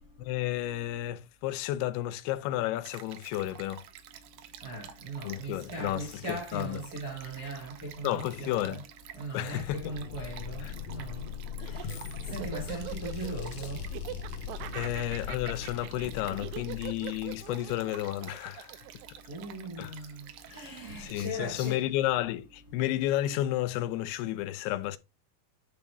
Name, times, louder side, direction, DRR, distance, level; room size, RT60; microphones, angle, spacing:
voice 1, 0.2-3.8 5.2-6.8 8.0-8.8 9.3-9.9 10.6-10.7 11.9-12.0 14.7-18.8 19.8-20.0 21.0-25.0, left 14 dB, 85° left, 2.7 m, -32 dB
Stream, 2.8-21.3, right 10 dB, 75° right, 1.9 m, -50 dB
voice 2, 4.6-8.8 9.1-11.2 11.6-11.8 12.3-13.8 19.3-21.8, right 2 dB, 45° right, 1.2 m, -39 dB
sound 1, 9.4-17.9, left 7 dB, 65° left, 2.2 m, -40 dB
Laughter, 11.5-19.9, right 15 dB, 90° right, 2.7 m, -43 dB
10.0 x 4.0 x 3.4 m
omnidirectional pair, 4.6 m